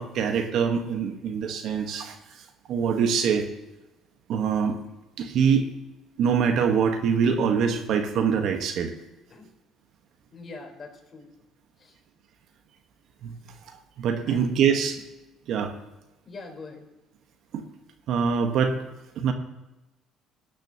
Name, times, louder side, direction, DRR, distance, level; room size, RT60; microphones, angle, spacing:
voice 1, 0.0-2.2 2.7-3.5 4.3-4.8 5.2-5.7 6.2-8.9 13.2-13.4 14.0-15.0 15.5-15.7 17.5-17.6 18.1-18.8 19.2-19.3, right 6 dB, 70° right, 6 dB, 1.4 m, -24 dB
voice 2, 10.3-11.3 11.8-12.0 14.3-14.5 16.3-16.9, left 3 dB, 40° left, 0 dB, 4.1 m, -43 dB
17.5 x 10.5 x 3.0 m, 1.0 s
supercardioid pair, 70°, 0 cm